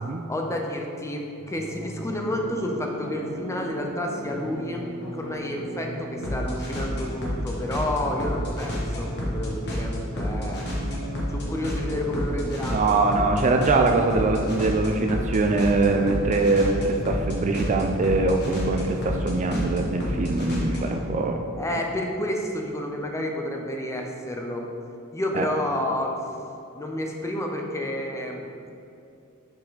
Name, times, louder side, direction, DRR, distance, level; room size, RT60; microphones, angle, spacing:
voice 1, 0.3-4.8 5.1-10.7 11.3-13.0 21.6-24.7 25.1-26.1 26.7-28.7, left 1 dB, 15° left, 1 dB, 0.5 m, -30 dB
sound 1, 1.4-21.0, equal, 55° left, 1.3 m, -31 dB
voice 2, 12.7-21.4 25.3-25.5, right 3 dB, 35° right, 4 dB, 0.3 m, -23 dB
6.5 x 4.2 x 4.0 m, 2.6 s
head